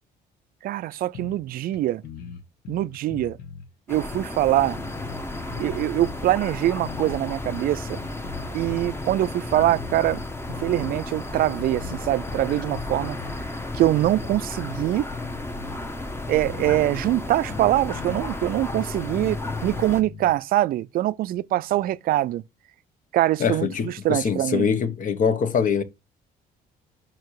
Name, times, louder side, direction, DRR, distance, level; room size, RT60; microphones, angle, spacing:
voice 1, 0.6-2.0 2.7-3.4 3.9-4.8 5.6-8.0 8.5-10.2 10.6-13.2 13.7-15.1 16.3-22.4 23.1-24.7, right 14 dB, 60° right, 0.4 m, -23 dB
sound 1, 1.1-3.7 4.1-6.2 6.5-8.5 8.8-9.0 9.4-11.0 11.4-12.0 12.3-13.3 13.7-15.8 16.2-16.3 16.4-16.8 17.0-20.3, left 6 dB, 70° left, 1.5 m, -40 dB
sound 2, 3.9-20.0, left 2 dB, 15° left, 1.0 m, -33 dB
voice 2, 23.4-25.8, left 6 dB, 50° left, 1.1 m, -23 dB
6.0 x 4.6 x 4.7 m
cardioid pair, 110°, 17 cm